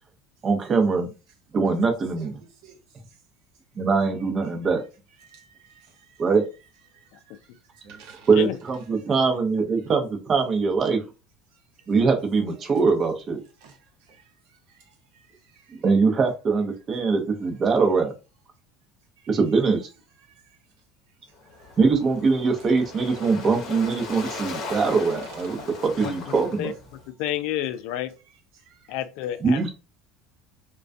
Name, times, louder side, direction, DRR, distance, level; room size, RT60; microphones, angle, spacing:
voice 1, 0.4-1.1 1.5-2.4 3.8-4.8 6.2-6.5 8.3-11.0 11.9-13.4 15.7-18.1 19.3-19.9 21.8-26.7 29.4-29.7, right 4 dB, 30° right, 0.6 m, -22 dB
voice 2, 5.2-6.2 6.9-7.4 7.7-8.3 13.6-13.8 14.1-14.2 15.5-15.6 21.6-21.7 28.7-28.8, right 6 dB, 75° right, 0.8 m, -53 dB
Waves surf, 21.4-27.1, left 3 dB, 50° left, 0.7 m, -38 dB
voice 3, 27.1-28.1 28.9-29.7, left 12 dB, 70° left, 0.3 m, -29 dB
2.2 x 2.2 x 2.5 m
cardioid pair, 135°, 0 cm